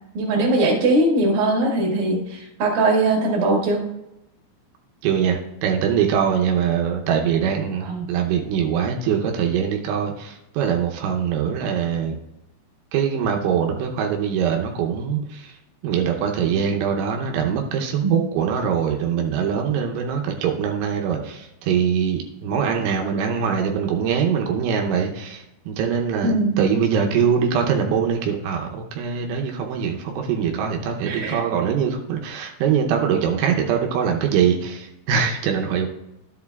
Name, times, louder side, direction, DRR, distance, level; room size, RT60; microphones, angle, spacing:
voice 1, 0.1-3.8 7.8-8.1 18.0-18.1 26.2-26.6 31.0-31.4, right 2 dB, 60° right, -2 dB, 3.1 m, -20 dB
voice 2, 5.0-12.2 12.9-15.6 15.8-35.9, right 7 dB, 85° right, 1 dB, 3.2 m, -23 dB
12.0 x 7.5 x 2.3 m, 0.87 s
omnidirectional pair, 5.4 m